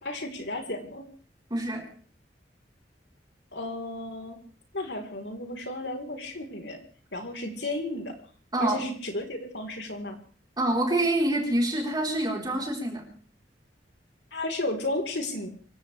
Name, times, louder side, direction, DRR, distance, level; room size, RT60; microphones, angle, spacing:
voice 1, 0.0-1.0 3.5-4.4 4.7-6.8 7.1-8.1 8.6-10.2 14.3-15.5, left 1 dB, 75° left, 3 dB, 4.0 m, -33 dB
voice 2, 1.5-1.9 8.5-8.8 10.6-13.0, right 1 dB, 25° right, 0 dB, 4.2 m, -26 dB
25.0 x 16.5 x 3.4 m, 0.41 s
head